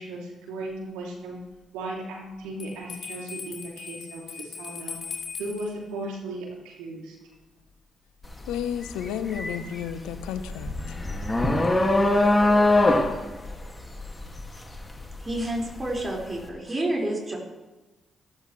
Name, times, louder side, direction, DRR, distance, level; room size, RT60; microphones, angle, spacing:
voice 1, 0.0-1.4 1.7-7.2, right 2 dB, 85° right, -2 dB, 3.0 m, -36 dB
Bell, 2.6-5.7, left 6 dB, 65° left, 3.0 m, -39 dB
sound 1, 8.2-8.5 8.9-15.9, left 2 dB, 20° left, 2.3 m, -22 dB
voice 2, 8.5-11.0, left 9 dB, 80° left, 10 dB, 0.9 m, -32 dB
voice 3, 15.2-17.4, right 1 dB, 30° right, -2 dB, 5.3 m, -29 dB
14.5 x 14.0 x 3.3 m, 1.1 s
hypercardioid pair, 45°, 0 cm